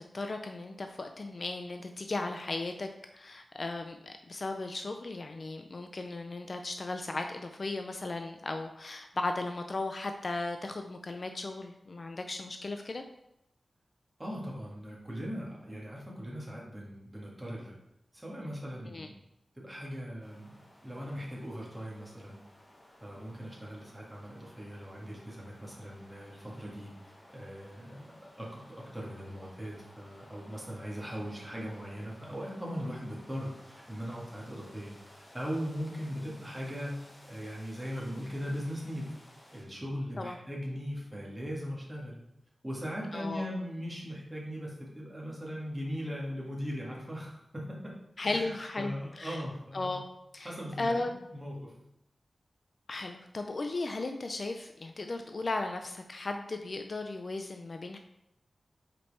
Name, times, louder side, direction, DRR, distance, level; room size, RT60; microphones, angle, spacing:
voice 1, 0.0-13.0 18.9-19.1 40.2-40.4 43.1-43.4 48.2-49.4 49.7-50.1 50.3-50.5 50.8-51.1 52.9-58.0, left 2 dB, 45° left, 5 dB, 0.4 m, -36 dB
voice 2, 14.2-17.7 18.1-19.1 19.6-22.4 23.0-28.1 28.4-37.0 37.3-39.2 39.5-42.2 42.6-47.9 48.2-50.0 50.4-51.7, equal, 10° right, -4 dB, 1.8 m, -39 dB
sound 1, 20.2-39.6, left 1 dB, 30° left, 1.2 m, -57 dB
5.3 x 4.3 x 4.2 m, 0.83 s
wide cardioid pair, 110°, 0 cm